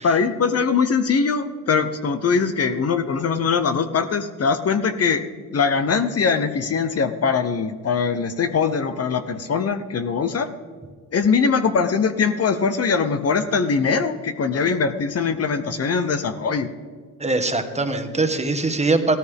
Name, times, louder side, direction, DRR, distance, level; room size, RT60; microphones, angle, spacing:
voice 1, 0.0-5.2 5.5-10.5 11.1-16.7, left 5 dB, 45° left, 9 dB, 0.9 m, -21 dB
voice 2, 17.2-19.2, right 3 dB, 20° right, 7 dB, 1.4 m, -22 dB
16.0 x 13.5 x 3.6 m, 1.5 s
cardioid pair, 90°, 34 cm